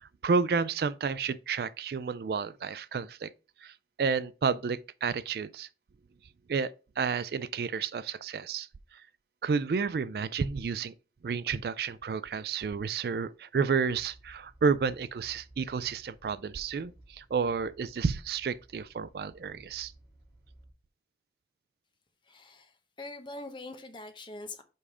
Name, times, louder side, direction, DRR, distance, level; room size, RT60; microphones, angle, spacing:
voice 1, 0.0-3.3 3.6-5.7 6.5-9.0 9.4-10.9 11.2-19.9, right 5 dB, 60° right, 0.3 m, -31 dB
sound 1, 13.8-20.7, right 1 dB, 5° right, 2.4 m, -57 dB
voice 2, 22.2-24.6, left 2 dB, 25° left, 0.8 m, -43 dB
5.4 x 4.9 x 4.9 m
head